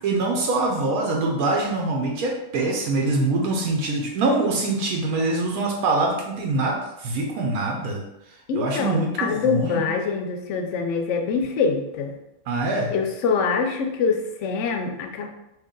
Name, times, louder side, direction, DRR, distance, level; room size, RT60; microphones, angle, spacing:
voice 1, 0.0-8.0 8.5-9.8 12.5-12.9, right 2 dB, 85° right, 0 dB, 1.1 m, -24 dB
voice 2, 8.5-12.2 12.9-15.3, left 5 dB, 70° left, 4 dB, 0.8 m, -24 dB
3.1 x 2.6 x 3.6 m, 0.86 s
omnidirectional pair, 1.5 m